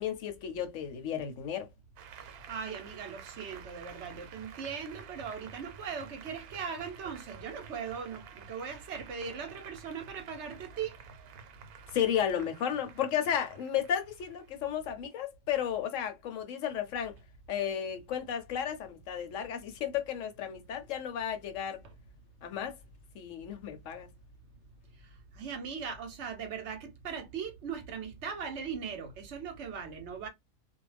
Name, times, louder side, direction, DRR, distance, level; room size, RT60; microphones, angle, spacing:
voice 1, 0.0-1.7 11.9-17.2 17.5-21.8 22.4-22.8 23.1-24.1, left 9 dB, 65° left, 0.9 m, -33 dB
Applause, 2.0-14.9, right 7 dB, 90° right, 1.1 m, -51 dB
voice 2, 2.5-11.0 25.4-30.3, right 6 dB, 60° right, 0.9 m, -39 dB
2.5 x 2.1 x 3.2 m
omnidirectional pair, 1.5 m